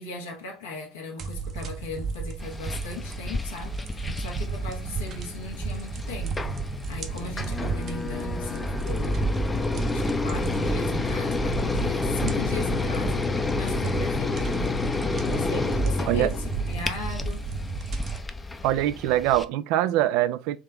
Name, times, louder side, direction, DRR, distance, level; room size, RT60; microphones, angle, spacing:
voice 1, 0.0-6.4 6.9-9.3 9.9-13.3 13.5-14.4 15.2-17.5, left 4 dB, 75° left, 1.1 m, -38 dB
sound 1, 1.2-18.2, right 5 dB, 45° right, 0.7 m, -33 dB
sound 2, 2.4-19.4, left 3 dB, 15° left, 0.6 m, -30 dB
voice 2, 18.6-20.6, right 14 dB, 60° right, 0.3 m, -23 dB
3.6 x 3.2 x 3.7 m
figure-of-eight pair, 60°, 0 cm